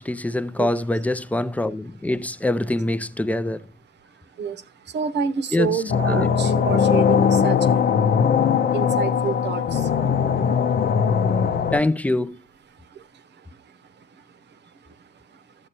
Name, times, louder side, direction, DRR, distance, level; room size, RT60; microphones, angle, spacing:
voice 1, 0.0-3.6 5.5-6.3 11.7-12.4, left 1 dB, 5° left, 0.5 m, -24 dB
voice 2, 4.4-7.9 8.1-8.2 8.7-11.6 12.8-14.2 14.5-14.6 14.8-14.9 15.3-15.4, right 6 dB, 60° right, 0.9 m, -30 dB
sound 1, 5.9-11.8, left 7 dB, 50° left, 0.7 m, -20 dB
12.0 x 7.8 x 2.9 m
cardioid pair, 90°, 20 cm